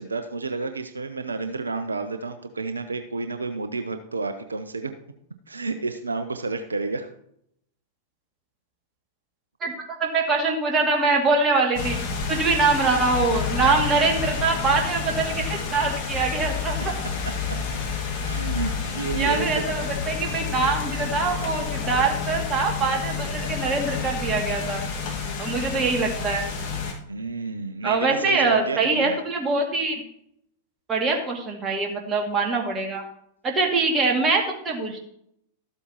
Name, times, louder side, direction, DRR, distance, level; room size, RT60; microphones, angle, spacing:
voice 1, 0.0-4.9 5.5-7.1 17.5-17.6 18.0-19.9 27.1-29.2, right 3 dB, 85° right, 9 dB, 0.6 m, -30 dB
voice 2, 9.6-12.0 12.3-16.8 19.1-24.8 25.4-26.5 27.8-30.0 30.9-33.0 33.4-35.1, right 3 dB, 25° right, 1 dB, 2.4 m, -23 dB
sound 1, 11.7-26.9, left 5 dB, 50° left, 1.9 m, -29 dB
13.0 x 7.9 x 3.0 m, 0.72 s
figure-of-eight pair, 95°, 0 cm